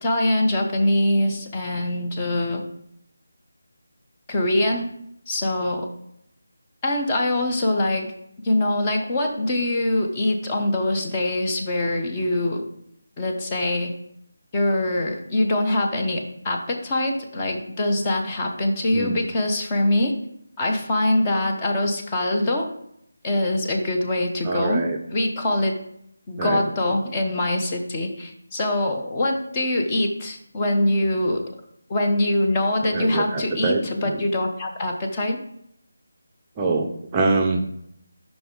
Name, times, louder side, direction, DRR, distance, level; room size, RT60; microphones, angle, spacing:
voice 1, 0.0-2.6 4.3-4.9 5.3-5.9 6.8-8.1 8.4-12.6 13.2-13.9 14.5-20.1 20.6-22.7 23.2-24.8 25.1-25.8 26.3-31.4 31.9-35.4, left 1 dB, 20° left, 1 dB, 0.9 m, -23 dB
voice 2, 24.4-25.0 26.4-26.6 32.8-34.2 36.6-37.8, right 3 dB, 20° right, 0 dB, 0.5 m, -25 dB
7.6 x 5.3 x 3.9 m, 0.74 s
figure-of-eight pair, 165°, 0 cm